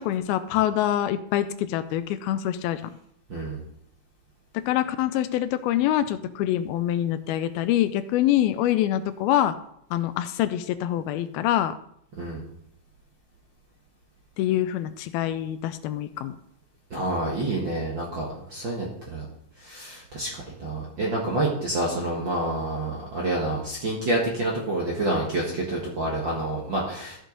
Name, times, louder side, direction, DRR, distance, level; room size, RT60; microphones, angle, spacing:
voice 1, 0.0-3.0 4.5-9.6 9.9-11.8 14.4-16.4, left 12 dB, 85° left, 12 dB, 2.4 m, -25 dB
voice 2, 3.3-3.6 12.2-12.4 16.9-19.2 19.6-27.2, right 1 dB, 50° right, -3 dB, 1.5 m, -28 dB
14.0 x 6.4 x 3.9 m, 0.71 s
omnidirectional pair, 4.3 m